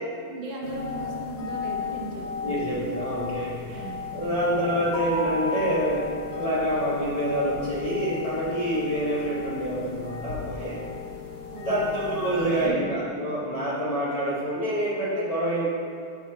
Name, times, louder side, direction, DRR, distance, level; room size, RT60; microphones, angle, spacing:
voice 1, 0.3-2.6 3.7-4.3 11.5-13.0, right 2 dB, 50° right, -2 dB, 0.6 m, -37 dB
sound 1, 0.6-12.7, left 4 dB, 55° left, 1.0 m, -34 dB
voice 2, 2.4-10.8 11.6-15.6, equal, 75° left, -8 dB, 0.3 m, -27 dB
7.1 x 3.9 x 4.3 m, 2.4 s
omnidirectional pair, 2.2 m